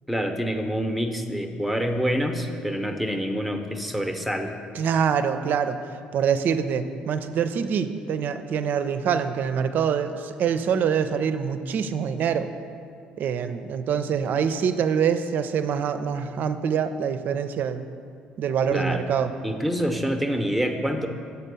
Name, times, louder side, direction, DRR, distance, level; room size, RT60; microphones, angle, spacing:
voice 1, 0.1-4.6 18.7-19.0 19.4-21.1, equal, ahead, 5 dB, 0.8 m, -26 dB
voice 2, 4.7-5.8 6.1-12.5 13.2-17.8 18.4-19.3, right 7 dB, 60° right, 10 dB, 0.4 m, -25 dB
6.8 x 4.4 x 6.7 m, 2.4 s
hypercardioid pair, 65°, 4 cm